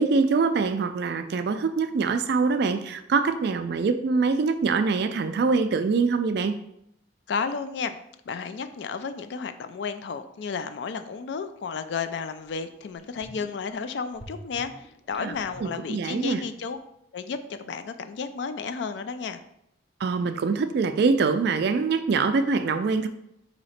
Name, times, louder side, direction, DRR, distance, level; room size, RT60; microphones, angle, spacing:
voice 1, 0.0-6.6 15.2-15.3 15.6-16.4 20.0-23.1, right 4 dB, 55° right, 9 dB, 0.3 m, -24 dB
voice 2, 7.3-7.9 8.3-16.8 17.1-19.4, left 5 dB, 60° left, 10 dB, 0.3 m, -32 dB
sound 1, 11.9-12.0 12.5-12.6 12.9-13.7 14.1-16.4 16.7-16.8, equal, ahead, 0.5 m, -46 dB
4.2 x 2.8 x 4.2 m, 0.77 s
head